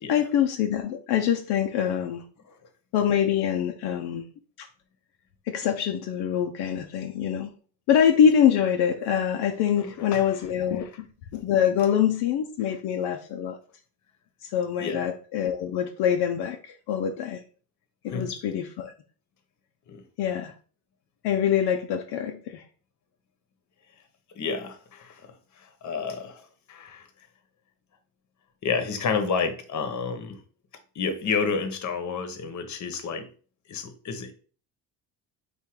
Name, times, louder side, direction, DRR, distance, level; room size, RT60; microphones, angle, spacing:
voice 1, 0.1-2.2 2.9-4.2 4.6-4.7 5.5-7.5 7.9-11.1 11.3-13.6 14.4-17.4 18.0-18.9 20.2-20.5 21.2-22.6, left 9 dB, 70° left, 0.7 m, -24 dB
voice 2, 9.8-10.2 14.8-15.0 18.1-18.3 19.9-20.0 24.3-25.2 25.6-27.1 28.6-30.4 30.9-33.3 33.7-34.3, left 5 dB, 45° left, 1.0 m, -30 dB
3.7 x 2.6 x 4.5 m
supercardioid pair, 80°, 41 cm